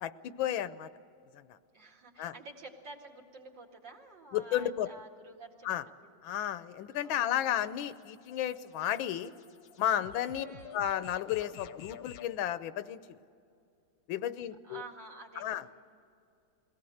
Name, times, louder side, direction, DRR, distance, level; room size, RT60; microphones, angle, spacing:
voice 1, 0.0-0.9 1.3-1.6 2.2-2.3 4.3-4.9 5.6-5.8 6.2-9.3 9.8-10.5 10.7-13.2 14.1-14.8 15.4-15.6, left 11 dB, 85° left, 14 dB, 1.5 m, -33 dB
voice 2, 1.7-6.2 7.0-7.5 10.4-10.8 14.6-15.7, right 3 dB, 65° right, 0 dB, 2.8 m, -50 dB
sound 1, 6.9-12.4, left 9 dB, 60° left, 1.0 m, -51 dB
22.0 x 17.0 x 7.8 m, 2.5 s
omnidirectional pair, 2.1 m